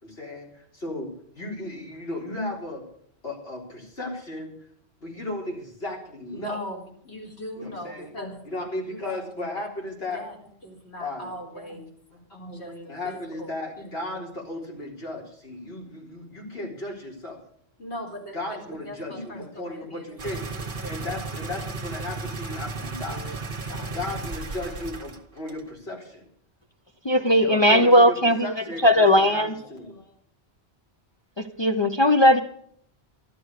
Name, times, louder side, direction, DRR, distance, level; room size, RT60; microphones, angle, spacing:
voice 1, 0.0-1.1 1.4-2.8 3.2-4.5 5.0-6.6 7.6-10.2 11.0-11.8 12.1-17.4 18.3-23.2 23.8-26.2 27.3-30.1, left 2 dB, 65° left, -2 dB, 4.2 m, -35 dB
voice 2, 6.3-8.4 9.0-9.2 10.1-10.4 10.6-12.0 12.5-13.5 17.8-21.1 22.8-24.0, equal, 80° left, -1 dB, 4.3 m, -40 dB
sound 1, 20.2-25.2 25.5-25.6, right 3 dB, 50° right, 1.3 m, -34 dB
voice 3, 27.0-29.5 31.4-32.4, equal, 30° left, 4 dB, 0.7 m, -18 dB
13.0 x 12.5 x 6.5 m, 0.63 s
omnidirectional pair, 1.1 m